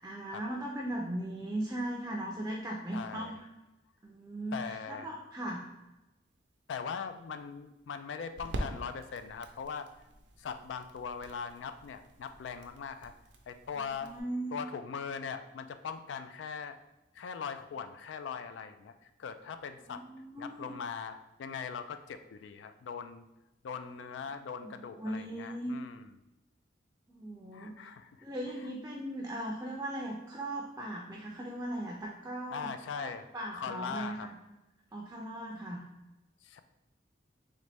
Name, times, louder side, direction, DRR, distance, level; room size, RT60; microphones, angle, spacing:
voice 1, 0.0-3.4 4.0-5.7 13.8-14.6 19.9-20.7 24.6-25.7 27.1-27.7 28.2-34.3 34.9-35.8, right 1 dB, 15° right, -1 dB, 0.4 m, -38 dB
voice 2, 2.9-3.4 4.5-5.1 6.7-9.9 10.4-13.1 13.5-14.1 14.5-16.8 17.1-20.0 20.4-23.3 23.6-26.1 27.5-28.2 28.6-28.7 32.5-34.3 36.4-36.6, left 6 dB, 80° left, 10 dB, 0.3 m, -40 dB
sound 1, 6.3-14.2, right 1 dB, 70° right, 0.5 m, -45 dB
3.9 x 3.1 x 3.3 m, 0.98 s
head